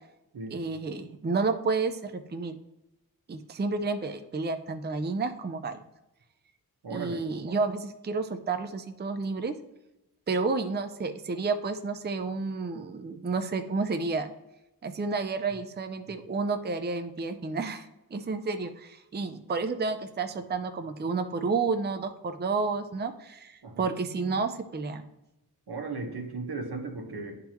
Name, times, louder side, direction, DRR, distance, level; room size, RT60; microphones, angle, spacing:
voice 1, 0.5-2.6 3.3-5.8 6.9-9.5 10.3-14.3 14.8-25.1, right 4 dB, 30° right, 8 dB, 0.5 m, -31 dB
voice 2, 6.8-7.2 23.6-23.9 25.7-27.4, right 3 dB, 90° right, 1 dB, 1.3 m, -36 dB
10.5 x 3.7 x 2.9 m, 0.94 s
wide cardioid pair, 65°, 38 cm